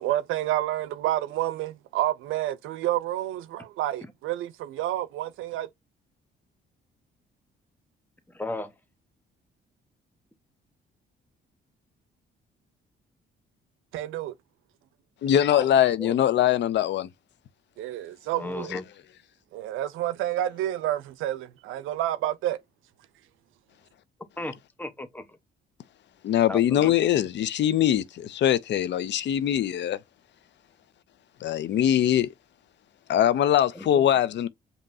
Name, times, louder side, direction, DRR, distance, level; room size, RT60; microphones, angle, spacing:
voice 1, 0.0-5.7 13.9-14.3 17.8-18.7 19.5-22.6, right 13 dB, 85° right, 0.5 m, -29 dB
voice 2, 8.3-8.7 15.5-15.7 16.0-16.2 18.4-18.8 24.4-25.4 26.5-26.9 33.7-34.0, left 1 dB, 10° left, 1.0 m, -35 dB
voice 3, 15.2-17.1 18.7-18.8 26.2-30.0 31.4-32.3 33.1-34.5, left 11 dB, 65° left, 0.5 m, -22 dB
5.3 x 2.9 x 2.6 m
cardioid pair, 90°, 20 cm